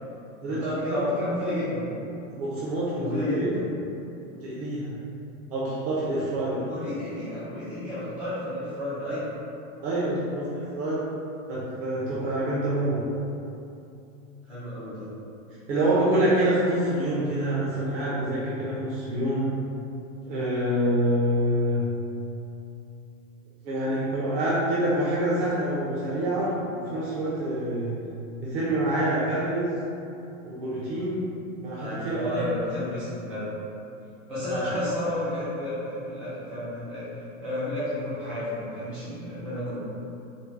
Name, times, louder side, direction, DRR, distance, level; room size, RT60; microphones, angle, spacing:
voice 1, 0.4-1.9 2.9-3.7 6.6-9.3 14.5-15.1 31.8-33.5 34.3-37.0 37.4-39.8, left 1 dB, 5° right, -13 dB, 0.3 m, -31 dB
voice 2, 2.3-3.5 4.3-5.0 5.5-6.6 9.8-11.0 11.5-13.0 15.7-19.5 20.3-21.8 23.6-28.0 28.4-29.7 30.4-31.3 31.6-32.5 34.5-34.7, right 1 dB, 50° right, -8 dB, 0.9 m, -26 dB
4.3 x 2.2 x 4.5 m, 2.7 s
supercardioid pair, 160°, 39 cm